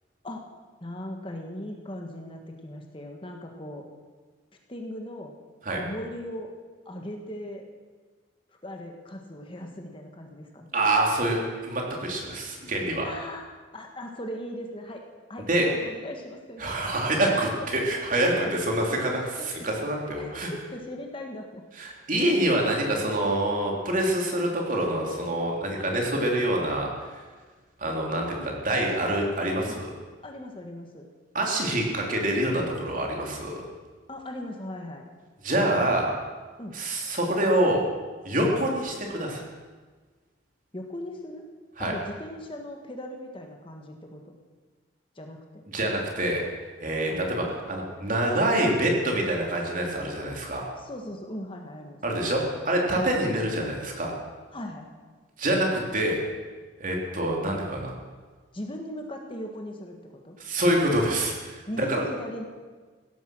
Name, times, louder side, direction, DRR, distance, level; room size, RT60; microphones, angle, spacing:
voice 1, 0.8-3.8 4.7-5.3 5.7-6.5 6.9-7.6 8.6-10.7 13.0-13.5 13.7-15.0 15.3-16.6 17.6-17.7 18.3-18.6 19.4-19.7 20.0-21.6 28.2-28.5 29.6-29.8 30.2-31.1 34.1-35.0 36.6-36.8 40.7-41.5 41.8-44.3 45.2-45.4 47.1-47.3 50.8-52.0 52.9-53.1 54.5-54.9 58.5-60.4 61.7-62.5, left 1 dB, 25° left, 2 dB, 1.6 m, -38 dB
voice 2, 10.7-13.1 15.5-15.7 16.6-19.2 19.6-20.5 21.8-27.2 27.8-29.9 31.3-33.6 35.4-36.1 36.7-37.8 38.2-39.4 41.8-41.9 45.7-46.4 46.8-50.7 52.0-54.1 55.4-56.2 56.8-57.9 60.4-62.0, right 1 dB, 40° right, 0 dB, 3.1 m, -26 dB
16.5 x 13.5 x 6.3 m, 1.4 s
head